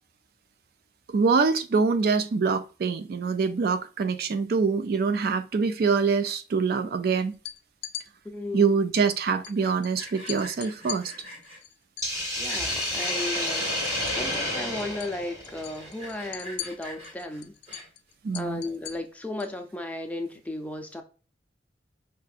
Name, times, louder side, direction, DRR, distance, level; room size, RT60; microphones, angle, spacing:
voice 1, 1.1-7.3 8.5-11.1 18.2-18.6, right 5 dB, 55° right, 0.4 m, -24 dB
sound 1, 7.3-8.1 9.4-9.5 9.8-9.9 10.3-13.1 13.3-14.5 14.8-15.1 15.4-19.6, left 12 dB, 65° left, 0.4 m, -40 dB
voice 2, 8.2-8.8 12.4-13.7 14.1-17.5 18.3-21.0, left 2 dB, 10° left, 0.5 m, -35 dB
Sawing, 9.4-11.6 12.1-13.3 13.8-14.4 14.8-14.9 15.1-15.2 15.6-18.1, left 1 dB, 35° right, 1.5 m, -44 dB
Hiss, 12.0-16.3, left 1 dB, 15° right, 1.5 m, -30 dB
5.6 x 2.5 x 2.4 m
head